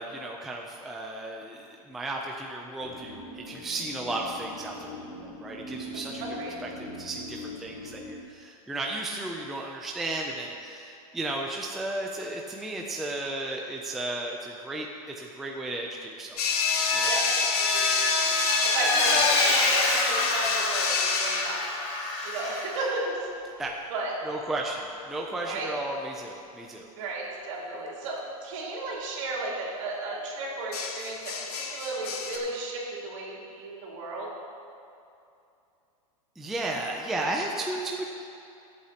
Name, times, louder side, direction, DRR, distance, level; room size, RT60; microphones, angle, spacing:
voice 1, 0.0-6.2 6.6-16.5 16.9-17.1 19.1-19.3 23.6-23.7 24.2-26.9 36.4-38.0, right 2 dB, ahead, -1 dB, 0.3 m, -34 dB
sound 1, 2.8-8.2, left 1 dB, 30° left, 1.1 m, -41 dB
voice 2, 6.2-6.5 17.1-17.3 17.6-21.6 22.2-23.2 23.9-24.1 25.4-25.7 26.9-34.3, right 2 dB, 55° right, -4 dB, 3.1 m, -34 dB
sound 2, 16.4-21.7 25.2-25.5 30.7-32.4, left 5 dB, 85° left, 1.4 m, -28 dB
Vehicle, 16.5-22.9, left 2 dB, 55° left, 2.3 m, -27 dB
22.0 x 8.3 x 2.8 m, 2.6 s
supercardioid pair, 170°, 19 cm